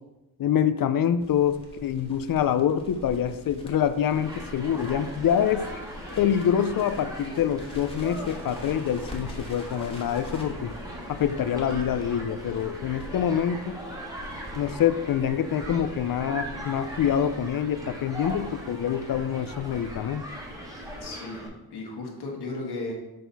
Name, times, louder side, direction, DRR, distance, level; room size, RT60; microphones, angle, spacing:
voice 1, 0.4-5.7 6.2-10.7 11.1-13.8 14.6-20.2, left 9 dB, 60° left, 12 dB, 0.5 m, -26 dB
Crackle, 1.2-21.0, left 1 dB, 15° left, 1.2 m, -44 dB
Human group actions, 4.1-21.5, equal, 10° right, 1.4 m, -40 dB
voice 2, 21.0-22.9, left 2 dB, 75° left, 0 dB, 1.5 m, -35 dB
6.6 x 4.0 x 4.0 m, 1.0 s
wide cardioid pair, 95°, 39 cm